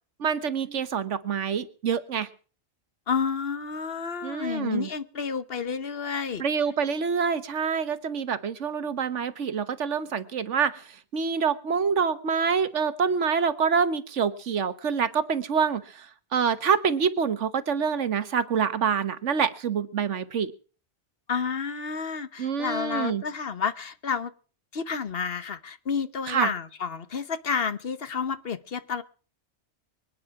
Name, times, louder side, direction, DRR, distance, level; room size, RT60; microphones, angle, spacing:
voice 1, 0.2-2.3 4.2-4.9 6.4-10.8 11.1-16.1 16.3-20.5 22.4-23.2 26.3-26.5, right 6 dB, 80° right, 1.5 m, -26 dB
voice 2, 3.1-6.4 21.3-24.3 24.7-29.0, left 6 dB, 55° left, 1.1 m, -30 dB
24.5 x 9.5 x 4.7 m
omnidirectional pair, 1.2 m